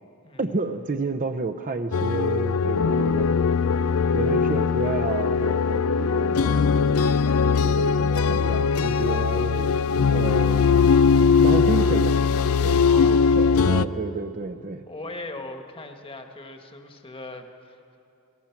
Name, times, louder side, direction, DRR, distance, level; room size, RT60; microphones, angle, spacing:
voice 1, 0.4-3.3 4.1-7.1 7.4-9.8 10.1-10.7 11.4-12.3 12.6-14.8, right 3 dB, 35° right, 6 dB, 0.7 m, -30 dB
sound 1, 1.9-13.9, left 5 dB, 70° left, 0.5 m, -20 dB
voice 2, 12.8-13.5 14.9-18.0, left 2 dB, 25° left, 5 dB, 1.5 m, -39 dB
29.0 x 18.0 x 6.0 m, 2.7 s
head